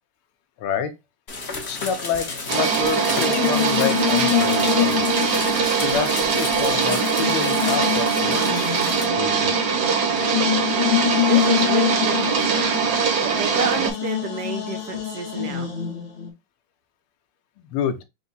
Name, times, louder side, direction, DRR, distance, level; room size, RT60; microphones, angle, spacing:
voice 1, 0.6-0.9 1.7-5.0 5.8-8.8 9.2-9.5 17.6-18.0, left 7 dB, 85° left, 1.6 m, -28 dB
sound 1, 1.3-9.1, left 3 dB, 40° left, 1.0 m, -33 dB
sound 2, 2.5-13.9, right 5 dB, 60° right, 1.3 m, -22 dB
sound 3, 3.2-6.2 6.7-13.3 13.6-16.3, left 13 dB, 60° left, 1.9 m, -26 dB
voice 2, 11.3-12.7 13.2-15.7, right 6 dB, 75° right, 0.9 m, -30 dB
4.6 x 2.2 x 3.9 m
omnidirectional pair, 2.4 m